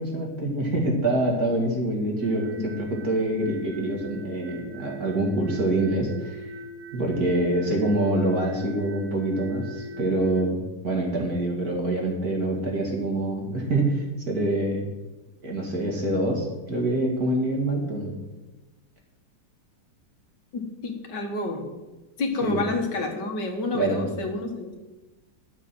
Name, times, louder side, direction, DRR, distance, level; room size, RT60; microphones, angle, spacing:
voice 1, 0.0-6.5 6.9-14.8 15.4-18.1 22.4-22.6 23.7-24.0, right 1 dB, 55° right, -1 dB, 2.7 m, -25 dB
sound 1, 2.2-10.4, right 1 dB, 90° right, 2.2 m, -41 dB
voice 2, 20.5-21.7 22.2-24.7, left 2 dB, 65° left, 3 dB, 2.0 m, -29 dB
11.0 x 7.3 x 6.2 m, 1.1 s
omnidirectional pair, 2.0 m